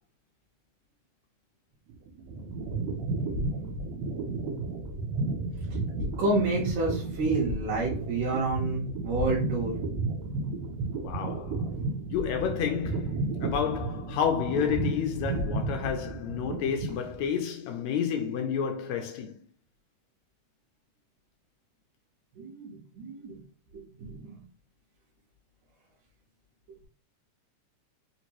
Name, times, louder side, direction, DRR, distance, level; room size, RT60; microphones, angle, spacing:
sound 1, 1.9-17.4, right 3 dB, 85° right, 2.3 m, -33 dB
voice 1, 6.0-9.7 22.4-23.4 23.7-24.4, right 2 dB, 70° right, 2.3 m, -29 dB
voice 2, 11.0-11.6 12.1-19.3, left 8 dB, 80° left, 1.8 m, -30 dB
5.1 x 2.9 x 2.9 m
omnidirectional pair, 3.5 m